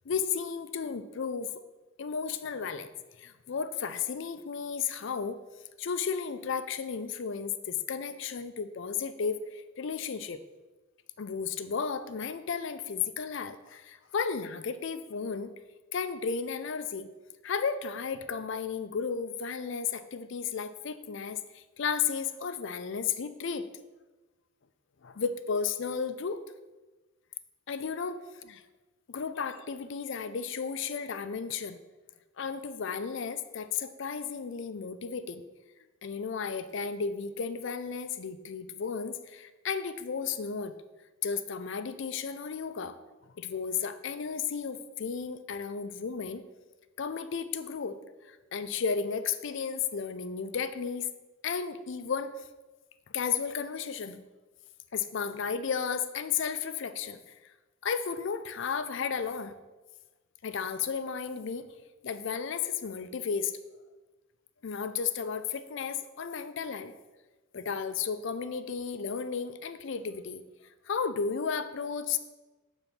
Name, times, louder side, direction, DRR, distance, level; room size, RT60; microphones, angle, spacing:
voice 1, 0.1-1.5 2.0-2.9 3.2-5.4 5.8-10.4 11.2-15.5 15.9-17.1 17.4-23.7 25.0-26.4 27.7-28.6 29.1-31.8 32.4-35.4 36.0-40.7 41.2-43.0 43.4-46.4 47.0-48.0 48.3-51.1 51.4-52.3 53.1-54.2 54.9-57.3 57.8-59.5 60.4-61.7 62.0-63.5 64.6-66.9 67.5-70.4 70.9-72.2, left 6 dB, 60° left, 11 dB, 0.4 m, -33 dB
7.1 x 4.0 x 5.8 m, 1.2 s
head